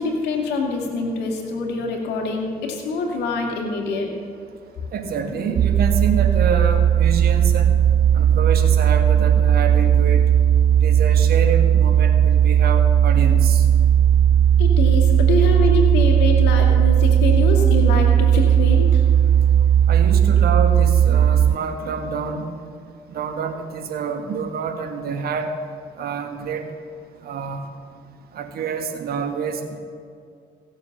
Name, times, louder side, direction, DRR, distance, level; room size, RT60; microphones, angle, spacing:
voice 1, 0.0-4.1 14.6-19.0, left 3 dB, 75° left, 1 dB, 2.3 m, -25 dB
voice 2, 4.9-7.7 8.1-10.3 10.8-13.6 19.9-22.5 23.1-25.5 26.0-26.6 27.2-27.6 28.3-29.8, right 5 dB, 65° right, 7 dB, 1.5 m, -27 dB
sound 1, 5.6-21.6, right 9 dB, 40° right, 0.4 m, -16 dB
16.0 x 7.1 x 6.6 m, 2.4 s
supercardioid pair, 65°, 17 cm